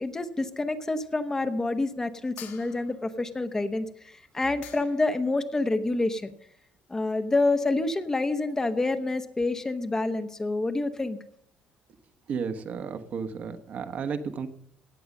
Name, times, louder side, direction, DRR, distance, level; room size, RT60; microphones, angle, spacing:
voice 1, 0.0-6.3 6.9-11.2, left 2 dB, 15° left, 8 dB, 1.0 m, -28 dB
sound 1, 2.4-3.2 4.3-4.4 4.6-5.2, left 10 dB, 75° left, 3.0 m, -47 dB
voice 2, 12.3-14.5, right 6 dB, 45° right, 8 dB, 1.2 m, -33 dB
17.0 x 8.6 x 6.5 m, 0.69 s
cardioid pair, 135°, 4 cm